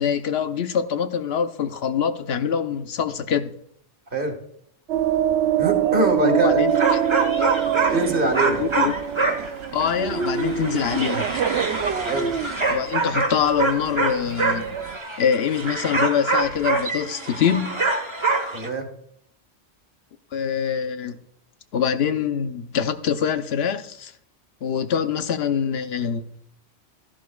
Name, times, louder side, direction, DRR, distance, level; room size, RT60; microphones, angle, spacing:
voice 1, 0.0-3.5 6.2-6.7 8.6-8.9 9.7-11.3 12.7-17.8 20.3-21.2 21.7-24.1 24.6-26.3, left 7 dB, 65° left, 0.9 m, -24 dB
sound 1, 4.9-15.0, right 9 dB, 75° right, 0.9 m, -25 dB
voice 2, 5.6-6.6 7.9-8.6 12.0-12.3 18.5-18.9, right 2 dB, 50° right, 1.8 m, -23 dB
sound 2, 6.7-8.1 8.3-18.7, right 3 dB, 25° right, 1.2 m, -25 dB
13.5 x 11.0 x 2.3 m
omnidirectional pair, 1.1 m